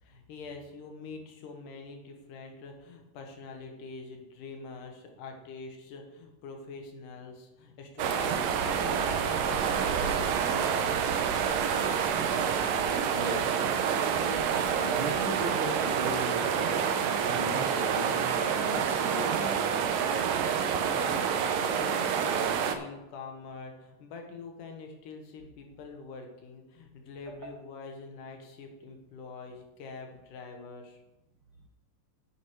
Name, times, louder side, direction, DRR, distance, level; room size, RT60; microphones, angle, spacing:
voice 1, 0.0-11.6 20.8-31.0, left 4 dB, 75° left, 3 dB, 2.8 m, -45 dB
sound 1, 8.0-22.8, right 7 dB, 80° right, 1.5 m, -28 dB
voice 2, 13.1-14.4 14.7-19.8 27.3-27.5, right 2 dB, 65° right, -1 dB, 1.4 m, -37 dB
8.8 x 8.6 x 4.7 m, 0.98 s
omnidirectional pair, 3.8 m